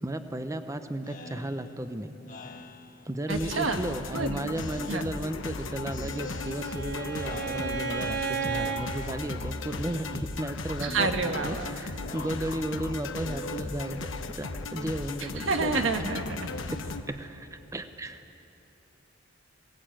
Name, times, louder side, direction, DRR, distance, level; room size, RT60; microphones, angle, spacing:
voice 1, 0.0-2.2 3.1-14.1 14.4-16.1 16.7-18.4, right 1 dB, 15° right, 9 dB, 0.7 m, -34 dB
Speech synthesizer, 1.0-4.2 4.6-5.6 5.9-6.9 7.2-8.1 8.5-9.4 9.7-10.5 10.8-14.4, left 2 dB, 45° left, 1.4 m, -46 dB
sound 1, 3.3-17.0, left 3 dB, 85° left, 1.1 m, -37 dB
voice 2, 3.3-3.8 4.1-4.4 4.9-5.0 10.8-11.7 15.2-16.5, right 3 dB, 85° right, 6 dB, 1.5 m, -29 dB
Bowed string instrument, 5.7-8.9, right 5 dB, 60° right, 1.6 m, -34 dB
20.5 x 19.0 x 8.9 m, 2.9 s
head